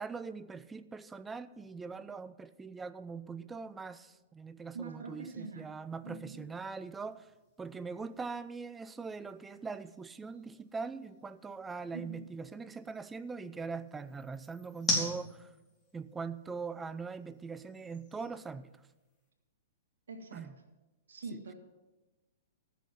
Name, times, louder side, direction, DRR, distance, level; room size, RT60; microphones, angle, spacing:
voice 1, 0.0-7.3 7.6-15.5 15.9-18.7 20.3-20.5 21.3-21.4, right 4 dB, 10° right, 14 dB, 0.5 m, -42 dB
voice 2, 4.7-5.8 6.0-6.5 11.9-12.3 20.1-20.5 21.1-21.5, right 4 dB, 85° right, 5 dB, 1.8 m, -44 dB
sound 1, 5.1-19.3, left 1 dB, 15° left, 3.4 m, -44 dB
14.0 x 6.3 x 7.2 m, 1.1 s
hypercardioid pair, 130°, 0 cm